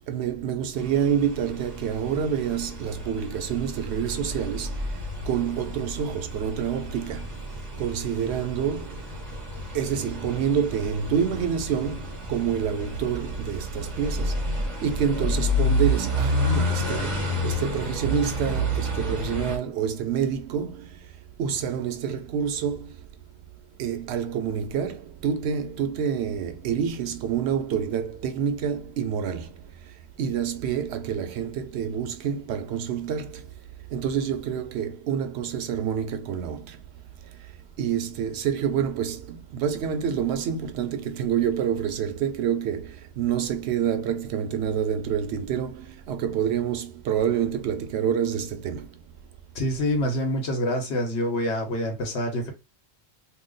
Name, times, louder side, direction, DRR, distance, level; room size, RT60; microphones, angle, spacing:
voice 1, 0.1-7.5 7.8-9.1 9.7-21.1 21.4-23.1 23.8-33.6 33.9-36.9 37.2-49.0, right 8 dB, 80° right, 0.8 m, -28 dB
sound 1, 0.8-19.6, equal, 30° right, 1.2 m, -30 dB
voice 2, 49.5-52.5, left 1 dB, 85° left, 1.2 m, -26 dB
2.9 x 2.0 x 3.8 m
omnidirectional pair, 1.1 m